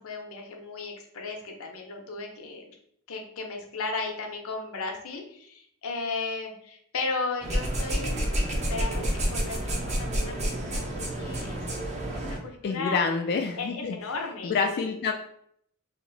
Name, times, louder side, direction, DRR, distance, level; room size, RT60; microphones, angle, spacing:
voice 1, 0.0-2.8 3.1-11.6 12.1-13.0 13.6-14.9, left 3 dB, 65° left, 3 dB, 0.7 m, -35 dB
sound 1, 7.4-12.4, right 1 dB, 30° right, 0.7 m, -29 dB
voice 2, 12.6-15.1, left 5 dB, 50° left, 4 dB, 0.3 m, -28 dB
2.9 x 2.5 x 3.8 m, 0.68 s
head